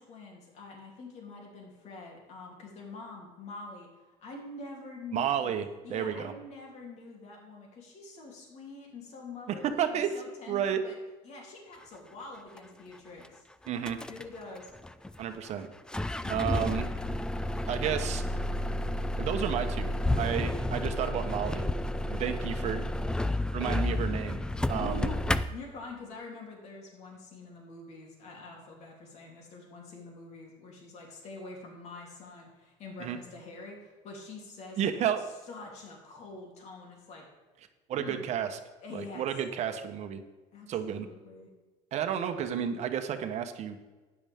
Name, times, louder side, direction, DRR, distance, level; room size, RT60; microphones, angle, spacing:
voice 1, 0.0-5.5 5.8-11.0 11.2-13.5 14.1-14.7 24.7-35.1 35.5-37.3 37.9-38.2 38.8-39.3 40.5-41.5, left 3 dB, 55° left, -1 dB, 3.1 m, -45 dB
voice 2, 5.1-6.3 9.6-10.1 10.5-10.8 13.7-14.0 15.2-15.7 16.3-16.9 17.7-18.2 19.2-21.7 22.1-22.9 23.5-24.4 24.7-25.1 33.0-33.2 34.8-35.2 37.9-38.6 38.9-40.2 40.7-41.1 41.9-43.9, right 9 dB, 50° right, 7 dB, 1.0 m, -31 dB
sound 1, 12.6-12.7 13.2-13.3 13.7-14.3 14.5-15.6 15.9-25.4, left 1 dB, 5° left, 0.4 m, -31 dB
12.5 x 9.8 x 3.6 m, 1.3 s
cardioid pair, 120°, 14 cm